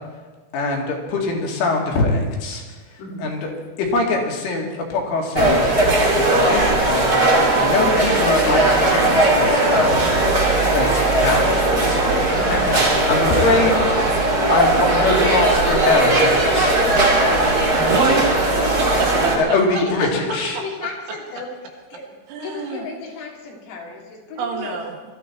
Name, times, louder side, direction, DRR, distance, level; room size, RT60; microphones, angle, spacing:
voice 1, 0.5-2.6 3.2-3.5 3.8-5.8 6.1-10.0 10.3-10.4 10.7-12.2 12.5-14.0 14.5-16.8 19.4-20.6, left 3 dB, 75° left, 0 dB, 4.7 m, -23 dB
sound 1, 5.3-19.4, right 2 dB, 25° right, 2.2 m, -18 dB
voice 2, 12.3-12.6 19.8-21.5 21.9-22.1 22.4-24.7, left 4 dB, 90° left, -1 dB, 5.5 m, -32 dB
voice 3, 17.7-18.7 19.0-19.8 22.3-22.9 24.4-24.9, right 5 dB, 70° right, 3 dB, 3.7 m, -27 dB
22.5 x 14.0 x 4.5 m, 1.3 s
omnidirectional pair, 5.8 m